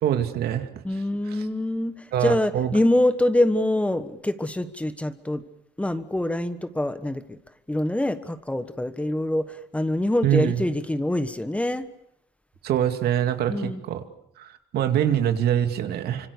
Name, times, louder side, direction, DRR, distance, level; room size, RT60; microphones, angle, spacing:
voice 1, 0.0-0.7 2.1-2.7 10.2-10.6 12.6-14.0 14.4-16.3, right 10 dB, 70° right, 7 dB, 2.4 m, -24 dB
voice 2, 0.8-5.4 5.8-7.4 7.7-11.9 13.5-13.8, left 1 dB, 5° left, 11 dB, 1.3 m, -25 dB
26.0 x 25.0 x 6.7 m, 0.78 s
cardioid pair, 110°, 17 cm